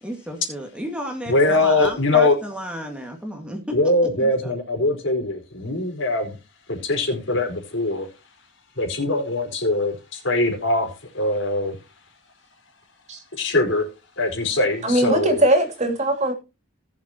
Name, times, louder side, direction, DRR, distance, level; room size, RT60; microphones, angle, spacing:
voice 1, 0.0-3.8 4.2-4.5, equal, 5° right, 2.1 m, -32 dB
voice 2, 1.3-2.4 3.7-6.3 6.7-8.1 8.8-10.9 11.1-11.7 13.3-13.8 14.2-15.4, left 2 dB, 65° left, 4.8 m, -22 dB
voice 3, 14.8-16.3, right 1 dB, 35° right, 3.2 m, -20 dB
19.5 x 7.5 x 3.0 m
head